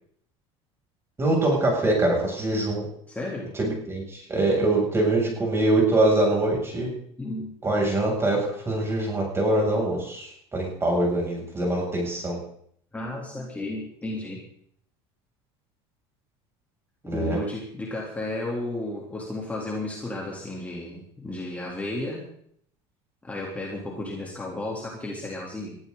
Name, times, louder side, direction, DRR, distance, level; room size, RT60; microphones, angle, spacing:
voice 1, 1.2-2.8 3.5-6.9 7.6-12.4 17.1-17.4, right 2 dB, 20° right, -1 dB, 7.9 m, -24 dB
voice 2, 3.1-3.5 7.2-7.5 12.9-14.4 17.0-22.3 23.2-25.8, left 1 dB, 10° left, -3 dB, 3.6 m, -33 dB
22.0 x 15.0 x 4.1 m, 0.66 s
cardioid pair, 135°, 14 cm